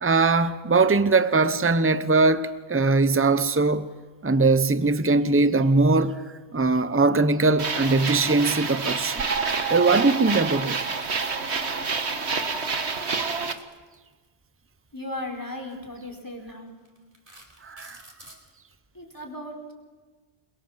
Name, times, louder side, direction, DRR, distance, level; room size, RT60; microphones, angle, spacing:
voice 1, 0.0-3.9 4.2-6.2 6.5-10.8 17.6-18.0, right 3 dB, 15° right, 0.9 m, -21 dB
sound 1, 7.6-13.5, right 4 dB, 75° right, 1.8 m, -28 dB
sound 2, 10.6-11.3 12.8-14.3 15.4-15.6 16.2-16.3 16.9-18.4, right 1 dB, 55° right, 4.7 m, -50 dB
voice 2, 14.9-16.8 17.3-17.4 18.9-19.7, left 1 dB, 15° left, 4.6 m, -36 dB
29.5 x 23.5 x 7.4 m
omnidirectional pair, 1.1 m